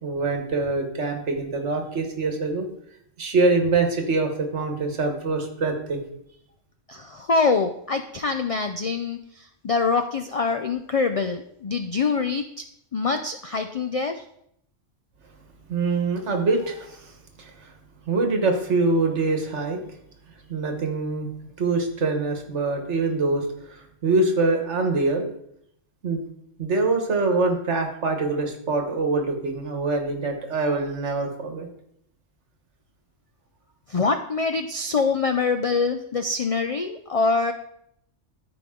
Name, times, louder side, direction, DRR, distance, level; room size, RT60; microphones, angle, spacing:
voice 1, 0.0-2.7 3.2-6.0 15.7-17.1 17.4-17.5 18.1-19.8 20.5-21.3 21.6-23.8 24.0-25.3 26.0-26.2 26.6-31.7, right 3 dB, 70° right, 4 dB, 1.6 m, -24 dB
voice 2, 6.9-12.4 12.9-14.2 33.9-37.5, left 4 dB, 60° left, 7 dB, 0.3 m, -24 dB
13.0 x 4.9 x 3.7 m, 0.74 s
omnidirectional pair, 1.2 m